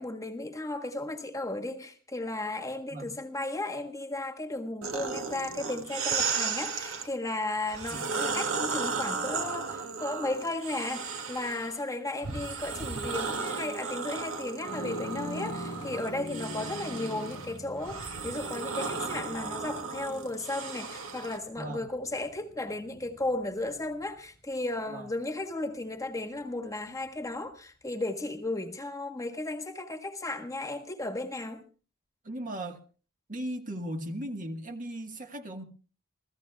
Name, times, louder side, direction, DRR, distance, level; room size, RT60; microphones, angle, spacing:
voice 1, 0.0-31.6, left 2 dB, 15° left, 1.5 m, -35 dB
sound 1, 4.8-7.1 7.7-11.8 12.2-21.4, right 5 dB, 70° right, 2.2 m, -35 dB
sound 2, 14.6-24.2, left 1 dB, 80° left, 1.4 m, -43 dB
voice 2, 32.2-32.8 33.3-35.6, right 1 dB, 40° right, 1.6 m, -37 dB
28.5 x 15.5 x 2.3 m
head